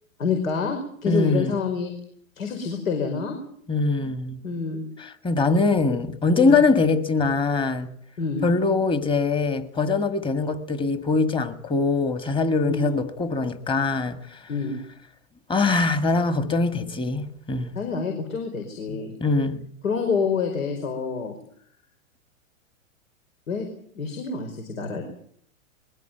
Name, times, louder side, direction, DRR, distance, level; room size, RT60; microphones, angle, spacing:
voice 1, 0.2-1.9 2.4-3.4 4.4-4.8 6.3-6.6 8.2-8.5 12.7-13.0 14.5-14.8 17.7-19.2 19.8-21.4 23.5-23.7 23.9-25.0, left 5 dB, 75° left, 4.9 m, -27 dB
voice 2, 1.1-1.5 3.7-4.4 5.0-7.9 8.4-14.4 15.5-17.7 18.9-19.6, left 3 dB, 10° left, 1.7 m, -23 dB
21.5 x 16.5 x 9.2 m
hypercardioid pair, 135°, 41 cm